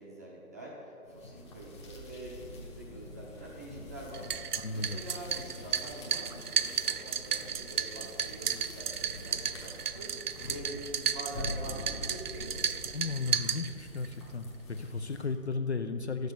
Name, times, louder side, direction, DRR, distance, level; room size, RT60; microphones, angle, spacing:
voice 1, 0.0-12.6, right 1 dB, 10° right, -5 dB, 0.7 m, -45 dB
sound 1, 1.0-15.5, left 1 dB, 20° left, 1.0 m, -45 dB
sound 2, 4.1-14.1, right 8 dB, 85° right, 0.6 m, -34 dB
voice 2, 4.6-5.0 12.9-16.3, left 4 dB, 50° left, 8 dB, 0.5 m, -35 dB
11.5 x 6.4 x 6.7 m, 2.8 s
figure-of-eight pair, 145°, 45 cm